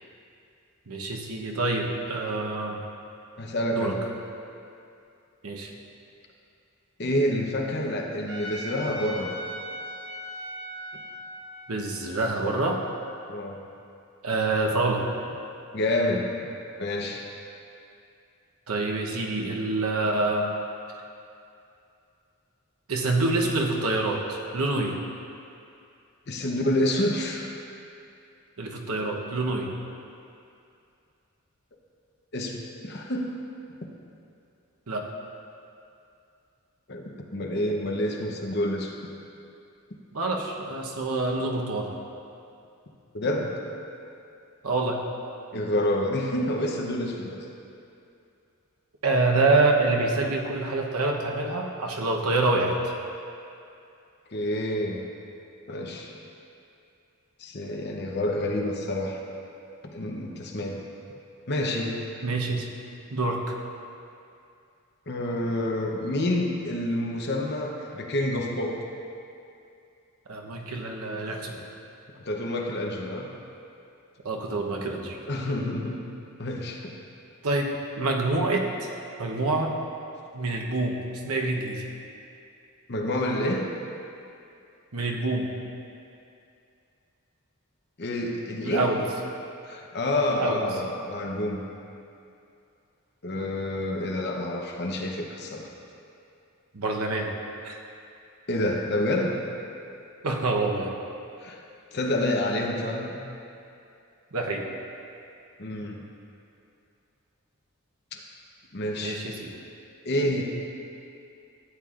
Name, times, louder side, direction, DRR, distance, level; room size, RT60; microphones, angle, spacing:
voice 1, 0.9-2.8 3.7-3.9 5.4-5.7 11.7-12.8 14.2-15.0 18.7-20.5 22.9-25.0 28.6-29.7 34.9-35.0 40.1-41.9 44.6-45.0 49.0-52.9 62.2-62.7 63.1-63.5 70.3-71.6 74.2-75.2 77.4-78.9 79.2-79.7 80.3-81.0 81.2-81.8 84.9-85.5 88.6-89.0 90.3-90.7 96.7-97.3 97.6-97.8 100.2-100.9 104.3-104.7 109.0-109.5, right 2 dB, 90° right, 0 dB, 1.0 m, -26 dB
voice 2, 3.4-4.0 7.0-9.3 13.3-13.6 15.7-16.3 16.8-17.2 26.3-27.5 32.3-33.3 36.9-38.9 43.1-43.6 45.5-47.4 54.3-55.1 55.7-56.1 57.4-59.2 59.8-60.9 61.5-62.0 65.1-68.8 72.3-73.3 75.3-76.1 76.4-76.9 82.9-83.7 88.0-89.0 89.6-91.6 93.2-95.7 98.5-99.4 101.4-101.6 101.9-103.1 105.6-106.0 108.1-108.2 108.7-109.2 110.0-110.4, left 1 dB, 50° left, 0 dB, 0.9 m, -28 dB
Trumpet, 8.3-13.5, equal, 55° right, 1.1 m, -40 dB
13.0 x 8.7 x 2.5 m, 2.6 s
head